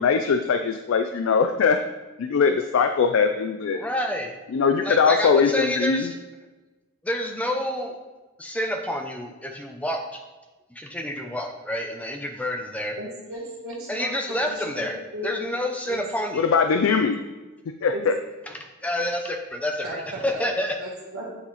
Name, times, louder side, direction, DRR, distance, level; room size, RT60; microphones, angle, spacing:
voice 1, 0.0-1.8 2.2-3.8 4.5-6.1 16.3-17.2 17.8-18.1, left 5 dB, 75° left, 7 dB, 0.3 m, -21 dB
voice 2, 3.7-4.4 4.8-6.2 7.0-7.9 8.4-10.2 10.7-13.0 13.9-15.0 15.2-16.4 18.5-20.8, left 1 dB, 5° left, 3 dB, 0.6 m, -28 dB
voice 3, 13.0-14.8 15.1-15.3 15.9-16.0 17.9-18.0 19.8-19.9 20.8-21.4, equal, 85° right, -7 dB, 1.7 m, -36 dB
8.6 x 4.0 x 4.0 m, 1.2 s
head